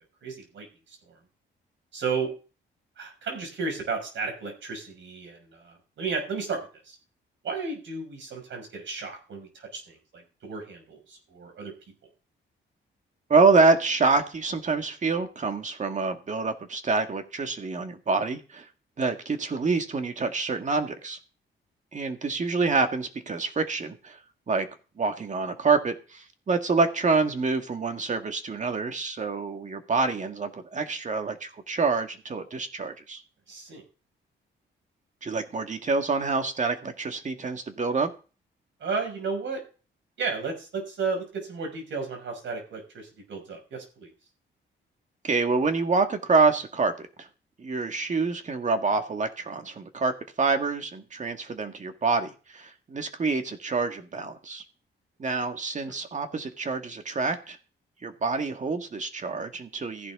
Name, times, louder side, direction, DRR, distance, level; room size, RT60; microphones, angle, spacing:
voice 1, 0.2-0.7 1.1-1.2 1.9-2.3 3.0-7.0 7.4-11.7 33.5-33.8 38.8-39.6 40.2-44.1 55.8-55.9, right 4 dB, 70° right, 3 dB, 5.8 m, -33 dB
voice 2, 13.3-18.7 19.0-21.2 21.9-24.2 24.5-24.7 25.0-33.2 35.2-38.1 45.2-47.3 47.6-50.1 50.4-54.6 55.2-57.6 58.0-60.1, right 4 dB, 35° right, 6 dB, 1.9 m, -26 dB
14.5 x 11.0 x 3.7 m, 0.35 s
cardioid pair, 100°, 20 cm